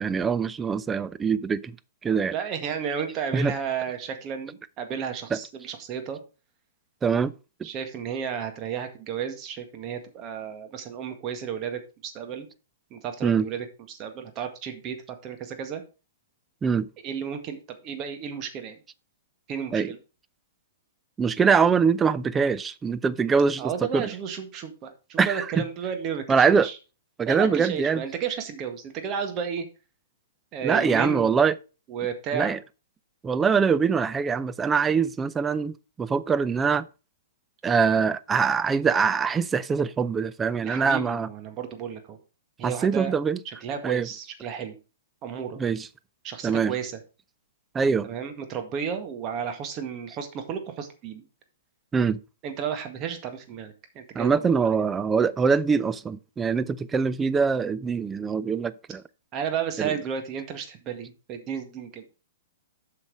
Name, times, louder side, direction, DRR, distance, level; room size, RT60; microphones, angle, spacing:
voice 1, 0.0-1.7 2.0-2.3 3.3-3.5 7.0-7.3 7.6-7.7 13.2-13.5 16.6-16.9 19.7-19.9 21.2-24.1 25.2-25.5 26.3-26.7 27.2-28.0 30.6-31.5 32.3-32.6 33.2-36.9 37.6-41.3 42.6-43.4 43.8-44.1 45.6-45.9 46.4-46.8 47.7-48.1 51.9-52.2 54.1-59.0 59.8-59.9, right 5 dB, 15° right, 0.5 m, -23 dB
voice 2, 2.3-6.2 7.6-12.5 12.9-15.8 17.0-18.8 19.5-20.0 23.6-26.8 27.3-29.7 30.5-31.3 31.9-32.6 40.6-42.2 42.6-43.1 43.5-44.7 45.2-45.6 46.2-47.0 48.0-51.3 52.4-54.3 54.6-54.7 59.3-62.0, right 7 dB, 30° right, 1.8 m, -33 dB
7.9 x 5.8 x 4.8 m
hypercardioid pair, 120°, 0 cm